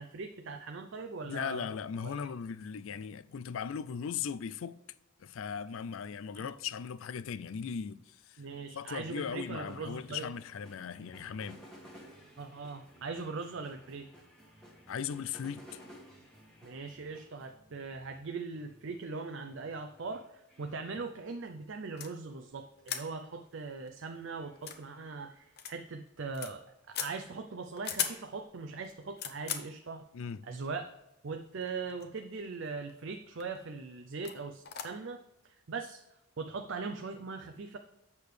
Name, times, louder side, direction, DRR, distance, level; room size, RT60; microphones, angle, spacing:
voice 1, 0.0-1.7 2.0-2.2 6.3-6.5 8.4-10.3 12.4-14.1 16.6-26.6 26.9-30.1 30.4-30.9 31.2-36.0 36.4-37.8, right 4 dB, 60° right, 0.5 m, -40 dB
voice 2, 1.2-4.8 5.2-8.4 8.7-11.6 14.9-15.8 30.1-30.5, left 7 dB, 65° left, 0.4 m, -38 dB
sound 1, 9.1-19.2 19.4-20.7 22.7-22.9 23.7-25.3, equal, 5° left, 1.4 m, -57 dB
sound 2, 22.0-22.1 22.8-23.1 23.5-23.6 23.9-24.0 24.5-24.8 25.6-25.7 26.1-26.5 26.9-27.1 27.8-28.2 28.8-29.7 30.7-30.8 31.6-32.2 32.4-32.9 33.4-33.6 34.2-34.4 34.6-34.8, left 8 dB, 45° left, 0.8 m, -37 dB
8.3 x 6.7 x 3.3 m
head